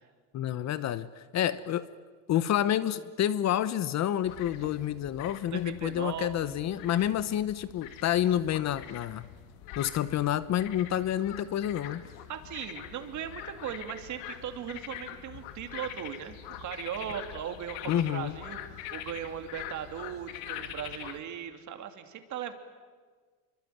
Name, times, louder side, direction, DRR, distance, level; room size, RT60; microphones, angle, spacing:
voice 1, 0.3-1.9 2.3-9.3 9.8-12.0 17.9-18.3, left 11 dB, 40° left, 15 dB, 1.0 m, -29 dB
sound 1, 4.2-21.2, left 11 dB, 75° left, 2.4 m, -44 dB
voice 2, 5.5-6.6 12.3-18.6 18.9-22.5, right 9 dB, 45° right, 7 dB, 2.9 m, -38 dB
26.0 x 24.0 x 9.4 m, 1.5 s
cardioid pair, 130°, 41 cm